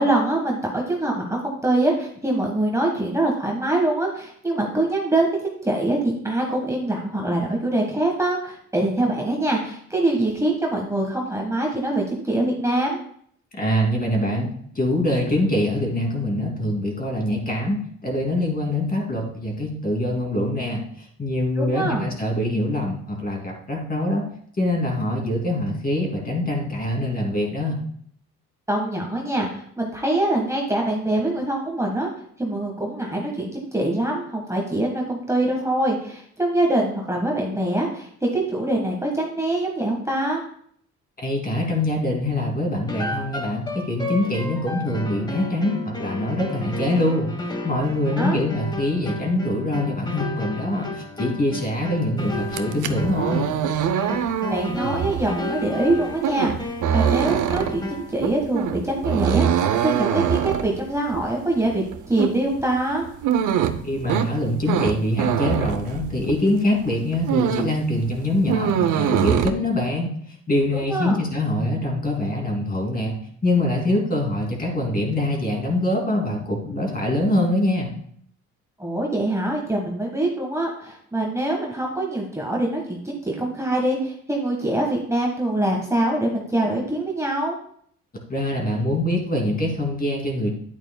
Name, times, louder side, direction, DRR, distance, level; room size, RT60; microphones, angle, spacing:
voice 1, 0.0-13.0 21.5-22.1 28.7-32.1 32.4-40.4 48.2-48.4 54.5-63.0 70.9-71.2 78.8-87.6, right 1 dB, 10° right, -1 dB, 1.5 m, -24 dB
voice 2, 13.5-24.2 24.6-27.8 41.2-47.3 47.6-53.5 63.8-70.1 70.5-73.2 73.4-77.9 88.3-90.5, left 1 dB, 30° left, 0 dB, 2.7 m, -24 dB
sound 1, 42.9-58.2, left 1 dB, 15° left, 1.4 m, -33 dB
sound 2, 52.4-66.5 66.9-67.8 68.1-69.5, right 9 dB, 80° right, 0.7 m, -24 dB
9.3 x 8.8 x 2.3 m, 0.63 s
cardioid pair, 90°, 30 cm